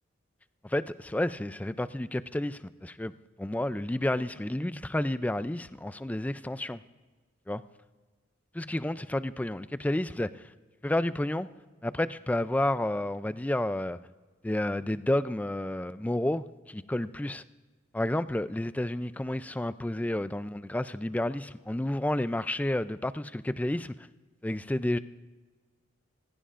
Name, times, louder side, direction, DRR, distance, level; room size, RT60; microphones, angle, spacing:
voice 1, 0.6-3.1 3.4-6.8 7.5-7.6 8.5-10.5 10.8-11.5 11.8-14.0 14.4-17.4 17.9-24.1 24.4-25.0, left 1 dB, 10° left, 13 dB, 0.3 m, -30 dB
28.5 x 15.5 x 2.5 m, 1.3 s
head